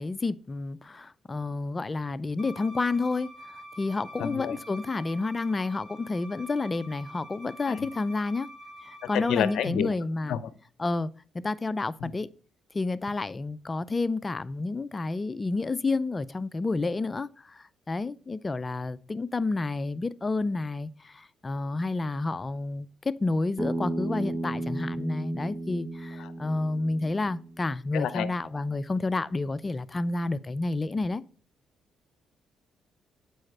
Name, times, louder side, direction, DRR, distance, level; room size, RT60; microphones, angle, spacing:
voice 1, 0.0-3.3 3.8-8.5 8.8-10.4 10.8-11.1 11.3-12.3 12.7-31.2, left 3 dB, 25° left, 0.3 m, -30 dB
Bowed string instrument, 2.4-9.7, equal, 5° right, 2.0 m, -47 dB
voice 2, 4.2-4.6 7.7-7.9 9.1-9.9 10.3-10.4 12.0-12.1 27.9-28.3, left 9 dB, 80° left, 0.5 m, -29 dB
Bass guitar, 23.6-27.8, right 1 dB, 25° right, 0.8 m, -34 dB
7.6 x 4.8 x 3.2 m
cardioid pair, 90°, 0 cm